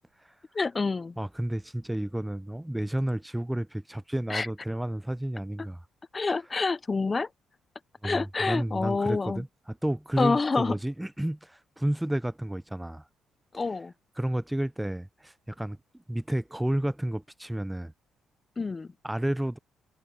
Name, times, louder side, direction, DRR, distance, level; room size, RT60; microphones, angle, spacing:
voice 1, 0.5-1.1 4.3-4.5 6.1-7.3 8.0-9.4 10.2-10.8 13.5-13.9 18.6-18.9, left 4 dB, 30° left, 0.7 m, -27 dB
voice 2, 1.2-5.9 8.0-13.1 13.5-13.7 14.2-17.9 19.0-19.6, right 1 dB, 5° right, 0.5 m, -31 dB
cardioid pair, 90°, 0 cm